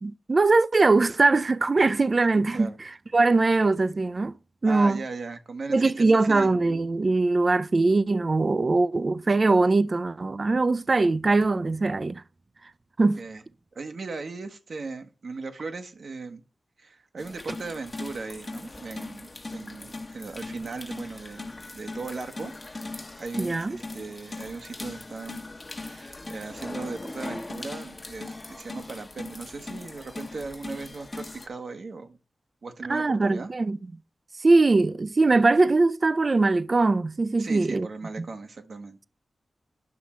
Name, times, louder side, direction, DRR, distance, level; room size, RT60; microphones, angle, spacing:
voice 1, 0.0-4.3 4.6-5.0 5.7-12.2 13.0-13.2 23.4-23.8 32.9-33.8 34.4-37.9 38.2-38.3, right 3 dB, 50° right, 0.4 m, -22 dB
voice 2, 2.3-2.8 4.6-6.5 13.2-13.4 13.7-16.4 16.8-22.5 23.2-25.4 25.8-32.2 32.6-33.5 37.4-39.0, right 4 dB, 70° right, 1.0 m, -38 dB
sound 1, 17.2-31.5, left 2 dB, 40° left, 1.0 m, -39 dB
9.5 x 5.9 x 4.2 m
cardioid pair, 45°, 0 cm